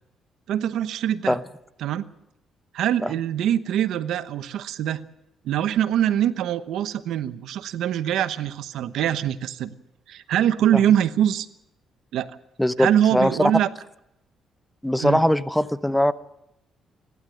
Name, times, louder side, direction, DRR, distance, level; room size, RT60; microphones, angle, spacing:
voice 1, 0.5-1.4 1.8-2.0 2.7-5.0 5.4-9.8 10.1-11.5 12.1-12.4 12.8-13.7 15.0-15.2, right 10 dB, 80° right, 13 dB, 0.9 m, -23 dB
voice 2, 12.6-13.3 14.8-16.1, left 1 dB, 5° left, 14 dB, 0.8 m, -21 dB
28.5 x 12.0 x 7.9 m, 0.85 s
cardioid pair, 90°, 0 cm